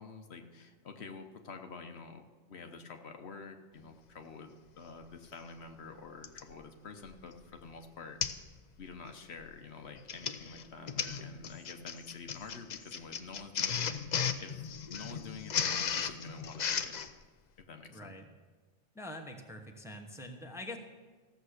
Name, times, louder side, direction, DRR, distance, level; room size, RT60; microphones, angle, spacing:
voice 1, 0.0-4.5 4.8-8.2 8.8-13.9 14.4-16.9 17.6-18.1, left 4 dB, 65° left, 5 dB, 1.1 m, -48 dB
Printer, 5.0-5.1 6.2-6.5 7.1-7.3 7.6-7.7 8.2-8.5 8.8-9.1 9.9-17.1, left 7 dB, 50° left, 0.6 m, -35 dB
voice 2, 17.9-18.2 18.9-20.8, left 1 dB, 5° right, 3 dB, 0.9 m, -44 dB
14.5 x 7.3 x 6.5 m, 1.3 s
omnidirectional pair, 1.2 m